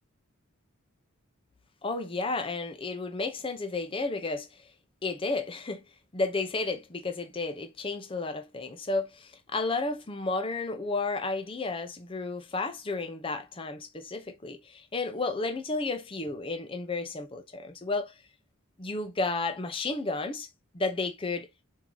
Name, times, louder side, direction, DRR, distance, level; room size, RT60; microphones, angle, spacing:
voice 1, 1.8-4.7 5.0-5.8 6.1-18.1 18.8-20.5 20.7-21.5, left 3 dB, 25° left, 0.5 m, -32 dB
4.5 x 2.7 x 3.7 m
head